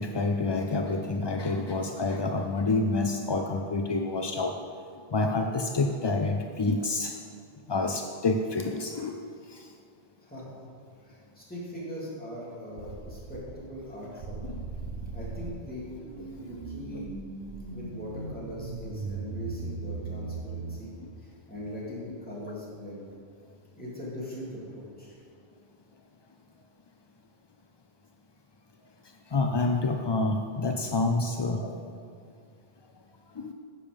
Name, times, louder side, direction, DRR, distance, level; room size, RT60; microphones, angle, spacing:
voice 1, 0.0-4.5 5.1-7.1 7.7-9.2 9.5-9.6 14.4-14.6 21.0-21.1 29.3-31.8 33.4-33.5, left 3 dB, 45° left, 4 dB, 0.3 m, -28 dB
voice 2, 11.0-14.5 15.1-15.8 16.4-17.0 17.7-23.1 23.7-25.2, left 1 dB, 10° left, -7 dB, 2.8 m, -40 dB
sound 1, 12.8-13.8 14.2-20.8, right 4 dB, 75° right, 1.0 m, -38 dB
9.8 x 7.2 x 5.2 m, 2.3 s
omnidirectional pair, 1.1 m